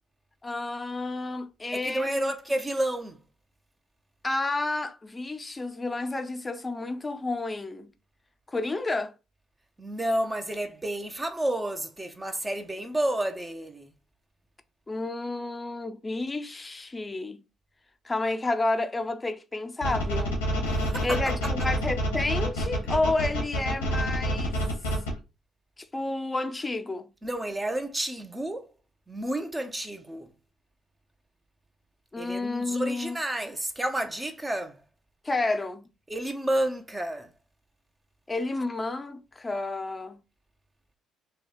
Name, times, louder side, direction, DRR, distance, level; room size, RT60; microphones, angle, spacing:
voice 1, 0.4-2.3 4.2-7.9 8.5-9.1 14.9-17.4 18.0-20.4 21.0-24.6 25.8-27.1 32.1-33.2 35.2-35.8 38.3-40.2, left 2 dB, 25° left, 0.5 m, -30 dB
voice 2, 1.7-3.2 9.8-13.9 20.7-21.5 27.2-28.7 29.1-30.3 32.2-34.8 36.1-37.3, right 1 dB, 20° right, 0.7 m, -30 dB
sound 1, 19.8-25.1, equal, 85° left, 1.0 m, -27 dB
3.0 x 2.3 x 4.2 m
hypercardioid pair, 50°, 0 cm